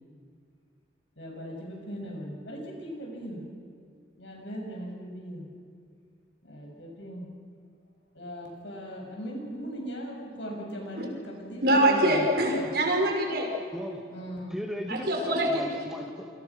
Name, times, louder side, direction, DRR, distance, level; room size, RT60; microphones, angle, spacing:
voice 1, 1.2-3.4 4.2-5.4 6.4-7.3 8.1-12.3 14.1-14.6, equal, 85° left, 0 dB, 7.6 m, -38 dB
voice 2, 11.6-13.5 14.9-15.6, right 1 dB, 55° right, 1 dB, 5.7 m, -24 dB
voice 3, 13.7-14.1 14.5-16.3, equal, 5° right, 2 dB, 2.3 m, -36 dB
27.5 x 26.5 x 6.3 m, 2.3 s
head